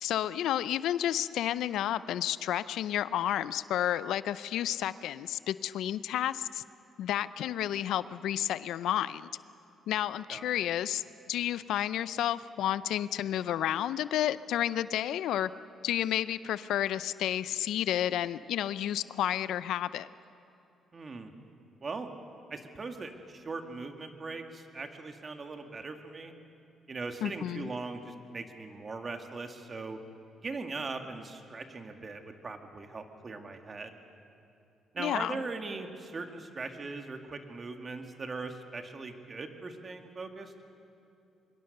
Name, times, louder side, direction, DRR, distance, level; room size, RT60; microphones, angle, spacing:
voice 1, 0.0-6.6 7.0-9.3 9.9-11.0 11.3-15.5 15.8-20.1 27.2-27.7 35.0-35.4, left 11 dB, 80° left, 16 dB, 0.5 m, -31 dB
voice 2, 10.3-10.6 20.9-21.3 21.8-22.1 22.5-26.3 26.9-30.0 30.4-34.0 34.9-40.5, right 3 dB, 35° right, 6 dB, 2.1 m, -40 dB
24.0 x 22.5 x 6.7 m, 2.7 s
cardioid pair, 90°, 0 cm